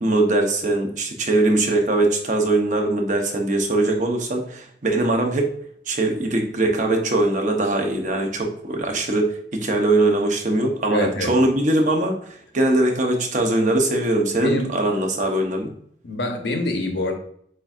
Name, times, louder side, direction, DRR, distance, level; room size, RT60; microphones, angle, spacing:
voice 1, 0.0-5.5 5.9-15.7, right 2 dB, 45° right, 2 dB, 0.8 m, -21 dB
voice 2, 10.9-11.3 14.4-14.7 16.0-17.1, left 1 dB, 70° left, 3 dB, 0.9 m, -25 dB
7.7 x 2.7 x 2.4 m, 0.65 s
head